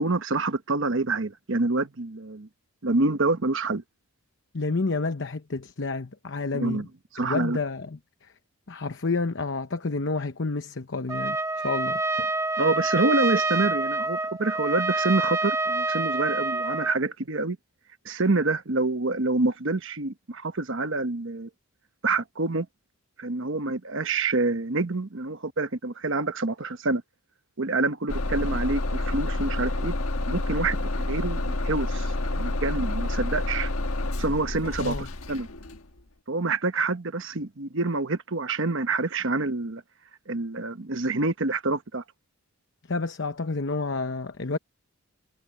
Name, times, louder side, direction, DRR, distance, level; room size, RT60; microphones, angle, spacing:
voice 1, 0.0-2.5 2.8-3.8 6.5-6.8 7.1-7.6 12.6-17.6 18.0-21.5 22.0-22.7 23.2-27.0 27.6-29.9 30.3-33.7 34.2-34.9 35.3-35.5 36.3-39.8 40.3-42.0, right 3 dB, 55° right, 1.1 m, -27 dB
voice 2, 4.5-6.9 7.2-8.0 8.7-12.0 34.8-35.1 42.9-44.6, left 3 dB, 55° left, 0.9 m, -29 dB
Trumpet, 11.1-17.0, right 3 dB, 15° right, 1.0 m, -27 dB
Bus / Engine starting, 28.1-35.8, left 2 dB, 75° left, 1.5 m, -29 dB
head